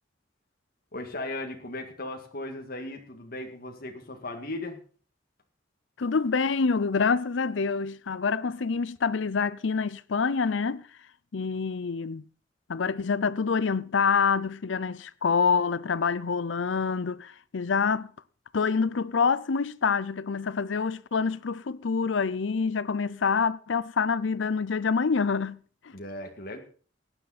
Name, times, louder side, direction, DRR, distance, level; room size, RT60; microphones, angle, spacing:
voice 1, 0.9-4.8 25.9-26.6, left 2 dB, 50° left, 2.0 m, -37 dB
voice 2, 6.0-10.9 11.3-12.2 12.7-18.1 18.5-25.6, left 5 dB, 80° left, 0.6 m, -26 dB
16.5 x 10.0 x 4.2 m
head